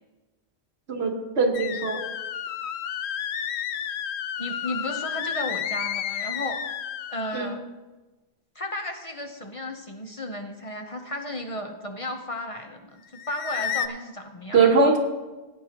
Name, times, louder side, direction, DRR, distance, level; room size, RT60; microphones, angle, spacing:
voice 1, 0.9-2.0 7.3-7.5 14.5-15.0, right 4 dB, 80° right, 3 dB, 1.5 m, -21 dB
sound 1, 1.5-7.6 13.1-13.9, left 9 dB, 90° left, 0.9 m, -31 dB
voice 2, 4.4-6.6 7.1-7.6 8.5-14.7, left 1 dB, 35° left, 4 dB, 0.8 m, -34 dB
16.5 x 9.4 x 2.9 m, 1.2 s
omnidirectional pair, 1.1 m